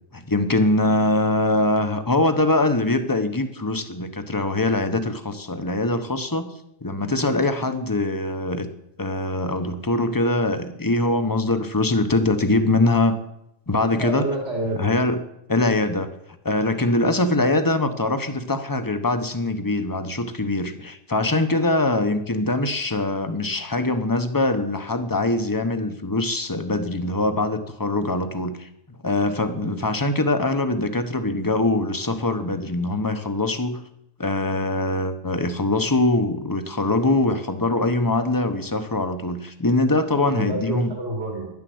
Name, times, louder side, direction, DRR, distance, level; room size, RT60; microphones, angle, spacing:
voice 1, 0.1-6.5 6.8-8.7 9.0-13.2 13.7-14.3 14.8-15.2 15.5-16.1 16.4-28.7 29.0-33.8 34.2-40.9, left 2 dB, 20° left, 9 dB, 1.0 m, -23 dB
voice 2, 13.8-14.9 29.4-29.8 40.2-41.5, right 2 dB, 65° right, -1 dB, 3.3 m, -29 dB
10.5 x 10.5 x 7.9 m, 0.79 s
omnidirectional pair, 1.3 m